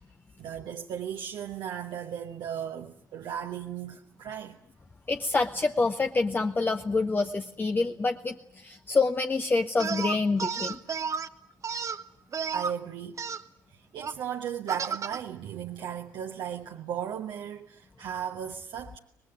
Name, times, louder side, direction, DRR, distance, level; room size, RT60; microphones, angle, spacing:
voice 1, 0.4-4.6 12.5-13.2 13.7-19.0, right 9 dB, 50° right, 1.1 m, -36 dB
voice 2, 5.1-10.8, left 3 dB, 20° left, 0.9 m, -27 dB
sound 1, 9.8-11.3 11.6-12.7 13.2-13.4 14.0-14.1 14.7-15.2, right 6 dB, 30° right, 1.1 m, -32 dB
24.5 x 20.0 x 9.5 m
figure-of-eight pair, 50°, 10 cm